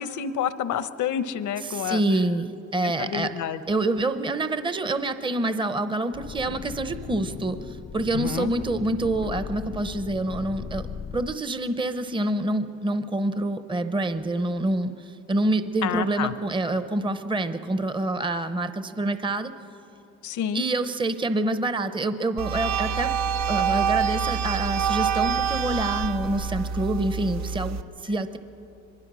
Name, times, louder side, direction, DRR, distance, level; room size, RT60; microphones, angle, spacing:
voice 1, 0.0-2.2 2.8-3.6 8.1-8.5 15.8-16.3 20.2-20.6, left 9 dB, 75° left, 13 dB, 0.9 m, -29 dB
voice 2, 1.7-3.3 3.7-10.9 11.1-19.5 20.5-23.2 23.5-28.4, right 2 dB, 15° right, 11 dB, 0.8 m, -27 dB
sound 1, 6.1-11.3, left 7 dB, 35° left, 0.5 m, -38 dB
sound 2, 22.4-27.8, right 7 dB, 65° right, 0.8 m, -26 dB
23.5 x 21.0 x 6.2 m, 3.0 s
cardioid pair, 90°, 30 cm